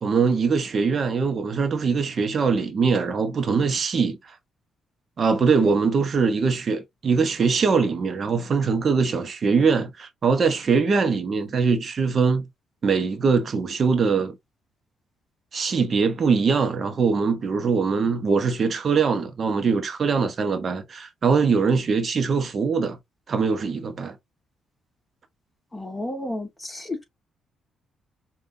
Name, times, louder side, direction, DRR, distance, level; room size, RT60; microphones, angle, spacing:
voice 1, 0.0-4.4 5.2-12.4 12.8-14.4 15.5-23.0 23.3-24.2, right 5 dB, 45° right, 0.8 m, -22 dB
voice 2, 25.7-27.0, left 1 dB, 15° left, 1.5 m, -32 dB
5.2 x 2.4 x 2.7 m
cardioid pair, 90°, 0 cm